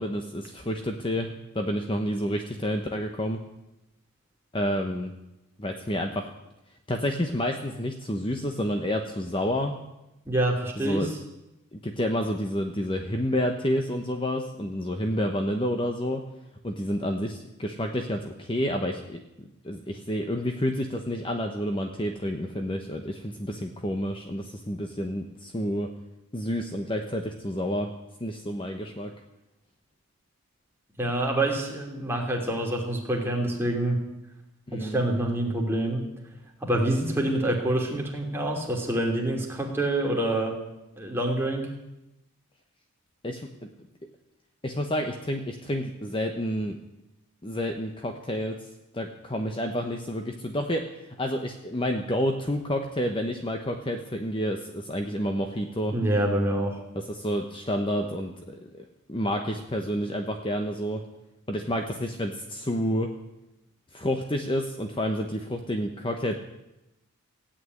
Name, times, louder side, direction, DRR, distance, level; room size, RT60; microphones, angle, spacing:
voice 1, 0.0-3.4 4.5-5.1 5.6-6.3 6.9-9.7 10.8-11.1 11.7-16.2 16.6-25.9 26.3-27.9 28.2-29.1 34.7-35.1 43.2-43.7 44.6-46.8 47.4-48.7 48.9-50.9 51.2-55.9 56.9-61.0 61.5-63.1 63.9-66.4, equal, 25° left, 4 dB, 0.9 m, -29 dB
voice 2, 10.3-11.1 31.0-34.0 34.7-36.0 36.6-40.5 41.0-41.7 55.9-56.7, right 1 dB, 10° right, -1 dB, 2.9 m, -26 dB
16.0 x 8.8 x 9.6 m, 0.94 s
head